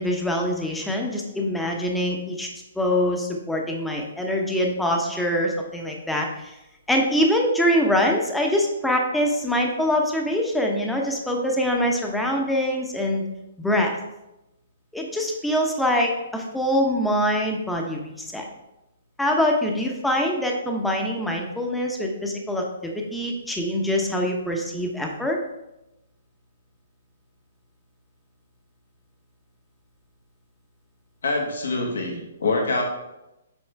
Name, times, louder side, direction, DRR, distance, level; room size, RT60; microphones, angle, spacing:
voice 1, 0.0-2.5 2.8-6.5 6.9-13.3 13.6-14.0 14.9-18.5 19.2-25.4, equal, 5° left, 0 dB, 0.8 m, -24 dB
voice 2, 31.2-32.8, left 3 dB, 85° left, 1 dB, 1.5 m, -25 dB
7.2 x 4.2 x 3.4 m, 0.93 s
hypercardioid pair, 145°, 0 cm